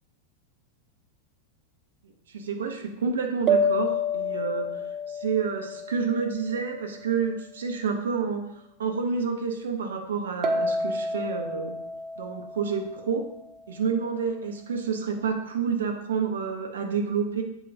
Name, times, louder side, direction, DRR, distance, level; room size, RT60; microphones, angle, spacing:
voice 1, 2.3-4.7 5.1-8.4 8.8-11.7 12.2-13.2 13.7-17.4, right 5 dB, 65° right, 3 dB, 1.0 m, -29 dB
sound 1, 3.5-7.0 10.4-13.5, left 1 dB, 30° right, 0.8 m, -29 dB
8.3 x 5.7 x 2.8 m, 0.83 s
figure-of-eight pair, 90°, 0 cm